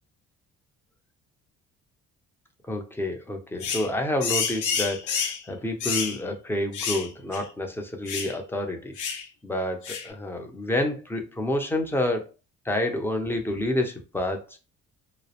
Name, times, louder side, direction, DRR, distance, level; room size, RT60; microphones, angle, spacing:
voice 1, 2.7-9.0 9.4-12.2 12.6-14.4, left 1 dB, 5° left, 0.5 m, -28 dB
sound 1, 3.6-3.9 4.2-5.4 5.8-6.2 6.7-7.1 7.3-7.4 8.1-8.3 9.0-9.2 9.8-10.1, left 6 dB, 75° left, 0.6 m, -29 dB
2.3 x 2.0 x 2.8 m
cardioid pair, 90°, 30 cm